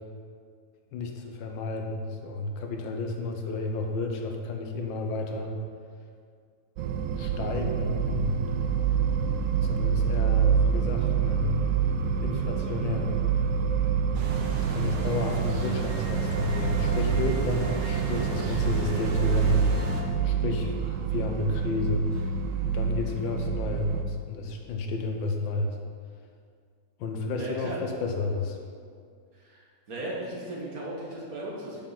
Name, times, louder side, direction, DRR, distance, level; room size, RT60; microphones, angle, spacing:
voice 1, 0.9-5.6 7.2-8.4 9.6-11.6 12.2-13.1 14.7-19.6 20.2-22.4 22.6-25.7 27.0-28.6, left 3 dB, 80° left, 3 dB, 1.5 m, -31 dB
sound 1, 6.8-24.0, right 7 dB, 90° right, 0.7 m, -27 dB
sound 2, 14.1-20.0, right 2 dB, 75° right, 1.5 m, -35 dB
voice 2, 27.4-27.8 29.4-31.8, right 1 dB, 50° right, -4 dB, 1.7 m, -36 dB
7.1 x 5.4 x 5.7 m, 2.2 s
omnidirectional pair, 2.1 m